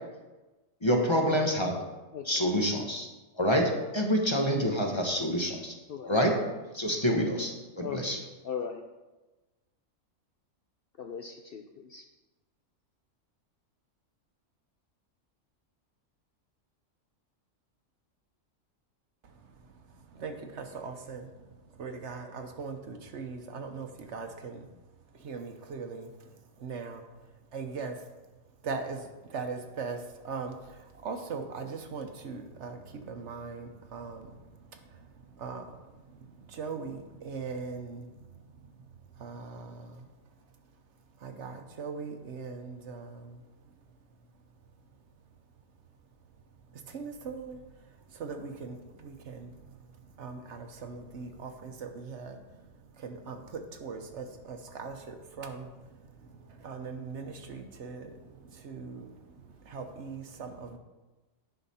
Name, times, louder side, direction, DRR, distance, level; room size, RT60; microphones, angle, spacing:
voice 1, 0.8-1.8 2.2-3.1 3.4-5.7 6.0-6.4 6.7-8.2, equal, 25° left, 1 dB, 0.9 m, -27 dB
voice 2, 2.1-2.5 5.9-6.1 7.8-8.1 8.4-8.8 11.0-12.1, left 7 dB, 60° left, 4 dB, 0.6 m, -39 dB
voice 3, 20.1-21.3 21.8-24.7 25.2-26.1 26.6-27.1 27.5-27.9 28.6-30.0 30.2-30.5 31.0-34.3 34.7-34.8 35.3-35.8 36.2-38.1 39.2-40.0 41.2-43.4 46.9-47.6 48.1-49.5 50.2-52.4 53.0-55.7 56.6-58.1 58.5-59.1 59.7-60.8, right 5 dB, 65° right, 6 dB, 1.1 m, -40 dB
10.5 x 5.7 x 4.2 m, 1.1 s
omnidirectional pair, 1.4 m